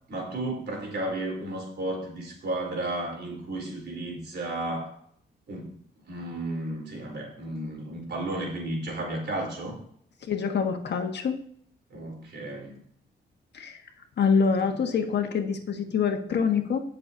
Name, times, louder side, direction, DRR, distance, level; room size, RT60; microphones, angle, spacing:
voice 1, 0.1-5.0 5.5-5.7 6.1-9.8 11.9-12.8, right 1 dB, 60° right, 0 dB, 4.1 m, -33 dB
voice 2, 10.3-11.4 13.5-13.8 14.2-16.8, left 6 dB, 65° left, 4 dB, 1.5 m, -25 dB
19.0 x 6.8 x 2.8 m, 0.64 s
cardioid pair, 100°, 19 cm